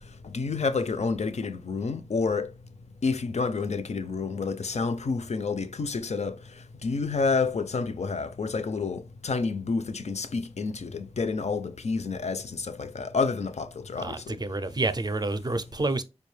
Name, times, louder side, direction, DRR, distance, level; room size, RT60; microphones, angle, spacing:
voice 1, 0.3-2.5 3.0-6.3 6.8-14.4, left 4 dB, 70° left, 0.4 m, -29 dB
voice 2, 14.0-16.0, right 2 dB, 35° right, 0.4 m, -29 dB
5.0 x 2.2 x 3.2 m
wide cardioid pair, 70°, 12 cm